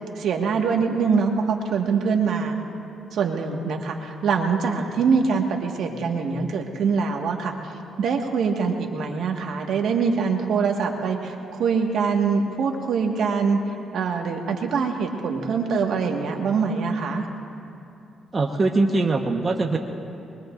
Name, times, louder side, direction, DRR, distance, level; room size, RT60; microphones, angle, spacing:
voice 1, 0.2-2.5 3.1-7.5 8.0-13.6 13.9-17.3, right 5 dB, 70° right, 2 dB, 1.7 m, -24 dB
voice 2, 18.3-19.8, right 3 dB, 30° right, 1 dB, 1.2 m, -22 dB
24.5 x 22.5 x 2.6 m, 2.7 s
cardioid pair, 90°, 0 cm